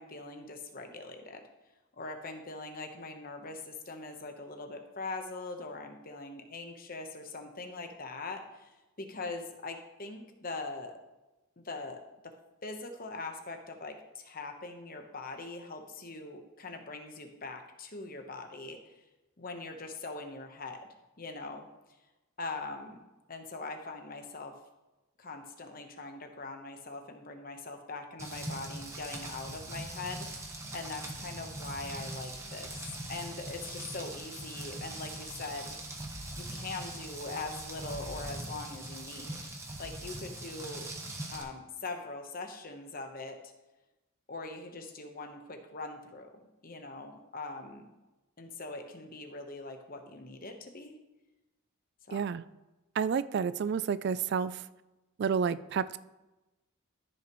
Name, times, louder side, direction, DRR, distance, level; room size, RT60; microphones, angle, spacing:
voice 1, 0.0-1.4 1.9-10.9 11.6-12.3 12.6-18.8 19.4-20.9 21.2-21.7 22.4-24.5 25.2-30.3 30.7-35.8 36.4-39.4 39.8-40.9 41.3-43.4 44.3-47.9 48.4-50.9 52.1-52.2, left 3 dB, 40° left, 5 dB, 1.0 m, -42 dB
Rain, 28.2-41.4, right 1 dB, 15° right, 1.0 m, -41 dB
voice 2, 52.1-52.4 53.0-54.6 55.2-56.0, right 6 dB, 50° right, 16 dB, 0.3 m, -30 dB
14.0 x 5.9 x 3.1 m, 1.0 s
head